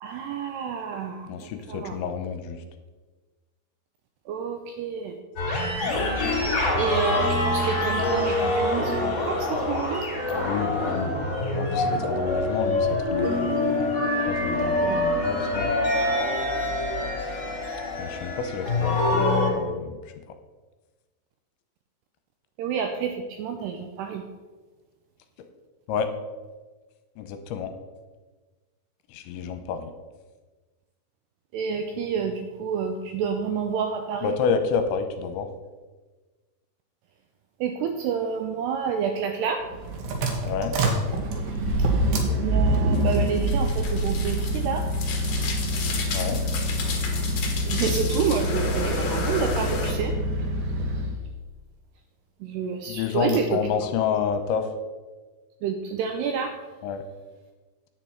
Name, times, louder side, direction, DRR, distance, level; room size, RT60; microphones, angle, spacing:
voice 1, 0.0-2.0 4.3-5.2 6.3-6.5 6.8-10.1 14.8-15.0 22.6-24.3 31.5-34.4 37.6-39.7 42.3-44.9 47.6-50.2 52.4-53.9 55.6-56.6, right 6 dB, 90° right, 5 dB, 2.4 m, -29 dB
voice 2, 1.3-2.6 10.3-13.6 14.3-15.7 18.0-20.0 25.9-26.1 27.2-27.7 29.1-29.9 34.2-35.5 40.4-40.8 46.1-46.4 52.9-54.7 56.8-57.0, left 6 dB, 85° left, 8 dB, 2.9 m, -29 dB
sound 1, 5.4-19.5, left 2 dB, 35° left, 2.4 m, -25 dB
sound 2, 39.6-51.2, right 1 dB, 65° right, 2.9 m, -26 dB
sound 3, 42.9-49.9, left 4 dB, 60° left, 2.0 m, -33 dB
10.0 x 8.8 x 4.5 m, 1.3 s
omnidirectional pair, 5.5 m